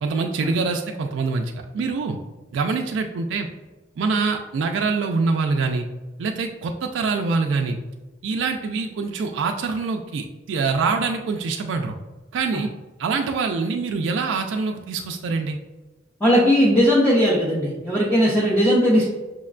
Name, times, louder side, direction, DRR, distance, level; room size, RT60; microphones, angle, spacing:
voice 1, 0.0-2.2 2.5-3.5 4.0-5.9 6.2-7.8 8.2-12.0 12.3-12.7 13.0-15.6, right 4 dB, 90° right, 4 dB, 0.3 m, -24 dB
voice 2, 16.2-19.0, equal, 10° left, -7 dB, 0.5 m, -18 dB
6.0 x 2.2 x 2.4 m, 1.2 s
head